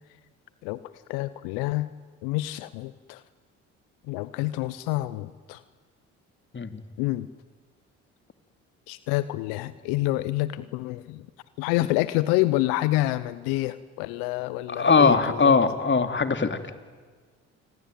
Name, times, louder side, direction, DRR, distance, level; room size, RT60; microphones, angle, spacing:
voice 1, 1.1-1.9 2.2-3.2 4.1-5.6 7.0-7.3 8.9-11.3 11.6-15.5, left 17 dB, 80° left, 16 dB, 0.9 m, -27 dB
voice 2, 14.7-16.6, left 4 dB, 30° left, 9 dB, 2.9 m, -20 dB
28.5 x 21.5 x 9.3 m, 1.5 s
hypercardioid pair, 55°, 36 cm